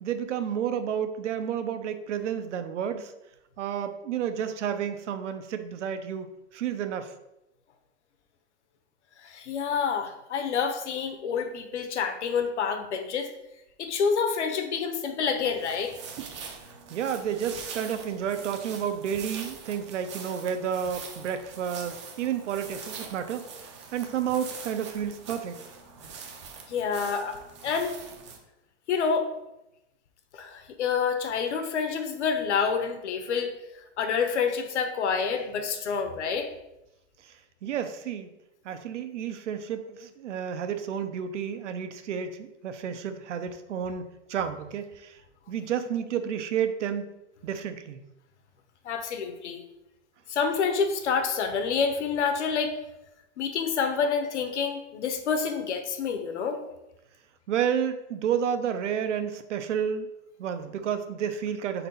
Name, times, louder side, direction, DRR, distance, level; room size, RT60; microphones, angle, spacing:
voice 1, 0.0-3.1 3.6-7.1 16.2-16.3 16.9-25.5 37.2-38.3 38.6-44.0 44.3-45.2 45.5-47.1 47.4-48.0 57.5-60.1 60.4-61.9, right 8 dB, 80° right, 9 dB, 0.8 m, -31 dB
voice 2, 9.2-13.3 13.8-16.0 26.7-27.4 27.6-27.9 28.9-29.3 30.3-36.5 48.8-49.6 50.3-52.7 53.4-56.6, left 6 dB, 70° left, 7 dB, 1.0 m, -28 dB
sound 1, 15.4-28.4, right 5 dB, 25° right, 0.5 m, -43 dB
4.3 x 4.1 x 5.3 m, 0.92 s
supercardioid pair, 175°, 35 cm